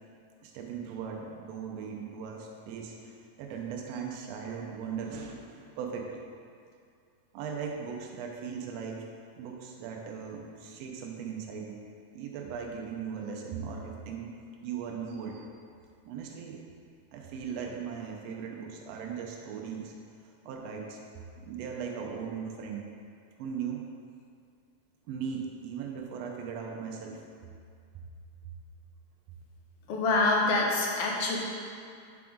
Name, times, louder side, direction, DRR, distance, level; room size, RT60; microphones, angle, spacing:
voice 1, 0.4-6.2 7.3-9.1 9.4-11.8 12.1-14.3 14.6-15.5 16.0-16.6 17.1-19.9 20.2-21.0 21.4-22.9 23.4-23.9 25.1-27.2 28.4-28.5, right 6 dB, 80° right, 0 dB, 1.5 m, -38 dB
voice 2, 29.9-31.4, left 3 dB, 70° left, -2 dB, 1.4 m, -26 dB
5.9 x 3.6 x 5.0 m, 2.3 s
omnidirectional pair, 3.5 m